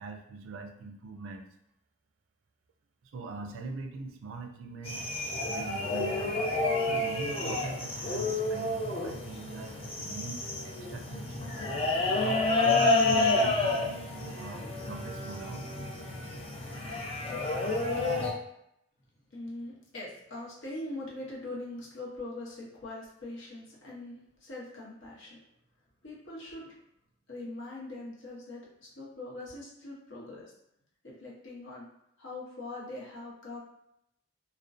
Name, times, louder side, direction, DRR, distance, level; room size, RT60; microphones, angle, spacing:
voice 1, 0.0-1.5 3.1-5.1 5.5-6.4 6.9-11.6 12.1-15.7, right 3 dB, 80° right, 4 dB, 0.4 m, -42 dB
sound 1, 4.8-18.3, left 2 dB, 30° left, 0.4 m, -30 dB
voice 2, 19.3-25.4 26.0-26.7 27.3-30.5 31.0-31.9 32.2-33.6, left 2 dB, 65° left, -4 dB, 0.8 m, -42 dB
2.4 x 2.1 x 2.4 m, 0.79 s
head